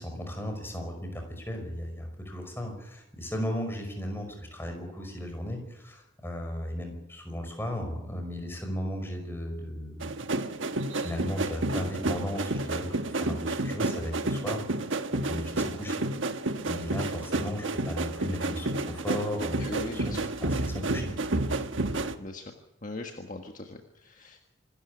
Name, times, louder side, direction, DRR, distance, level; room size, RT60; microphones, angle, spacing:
voice 1, 0.0-10.3 11.0-16.0 16.6-21.1, equal, 10° left, 4 dB, 5.5 m, -36 dB
sound 1, 10.0-22.2, right 2 dB, 80° right, 1.3 m, -31 dB
voice 2, 19.6-20.3 22.2-22.5 22.8-24.4, left 2 dB, 40° left, 3 dB, 1.6 m, -40 dB
26.5 x 13.0 x 9.6 m, 0.93 s
head